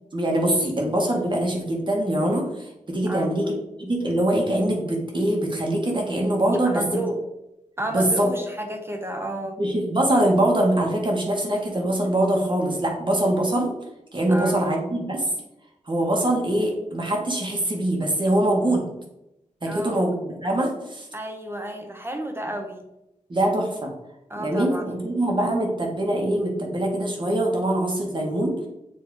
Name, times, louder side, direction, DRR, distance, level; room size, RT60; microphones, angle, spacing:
voice 1, 0.1-3.5 3.8-6.8 7.9-8.3 9.6-13.7 14.1-15.3 15.9-18.8 19.6-21.1 23.3-23.9 24.4-28.5, right 1 dB, 35° right, 0 dB, 1.5 m, -23 dB
voice 2, 6.5-7.2 7.8-9.6 14.3-14.7 19.7-20.0 21.1-22.9 24.3-24.9, right 1 dB, 15° right, 4 dB, 0.8 m, -31 dB
7.4 x 3.0 x 4.7 m, 0.88 s
wide cardioid pair, 120°, 13 cm